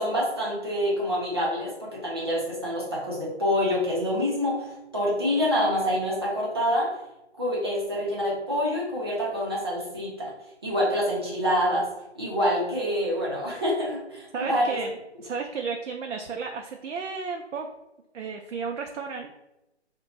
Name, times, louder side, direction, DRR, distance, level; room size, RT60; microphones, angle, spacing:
voice 1, 0.0-6.9 7.4-10.3 10.6-11.8 12.1-14.8, equal, 20° right, -6 dB, 0.6 m, -26 dB
voice 2, 14.3-17.7 18.1-19.3, right 5 dB, 90° right, 3 dB, 0.5 m, -33 dB
2.6 x 2.2 x 3.8 m, 0.92 s
hypercardioid pair, 165°, 35 cm